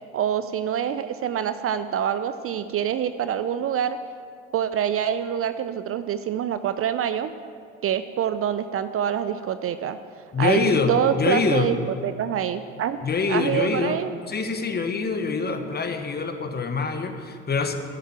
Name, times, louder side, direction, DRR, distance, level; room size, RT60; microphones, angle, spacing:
voice 1, 0.1-4.0 4.5-7.3 7.8-10.0 10.4-11.8 12.0-13.0 13.3-14.1, right 9 dB, 40° right, 12 dB, 0.6 m, -26 dB
voice 2, 10.3-11.7 13.0-14.0 14.3-17.8, left 4 dB, 25° left, 7 dB, 1.3 m, -25 dB
12.5 x 8.0 x 7.4 m, 2.4 s
hypercardioid pair, 65°, 36 cm